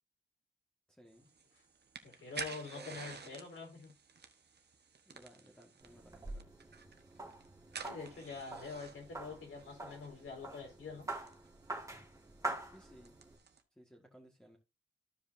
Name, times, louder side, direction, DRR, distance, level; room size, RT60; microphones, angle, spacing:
voice 1, 0.9-1.3 2.7-3.0 5.1-6.4 12.7-13.2 13.8-14.6, equal, 5° left, 1.7 m, -59 dB
sound 1, 1.1-13.6, right 5 dB, 50° right, 1.1 m, -52 dB
voice 2, 2.0-3.9 7.8-11.1, left 4 dB, 80° left, 4.0 m, -46 dB
sound 2, 5.8-13.4, right 2 dB, 15° right, 1.8 m, -46 dB
14.5 x 4.9 x 2.6 m
cardioid pair, 85°, 21 cm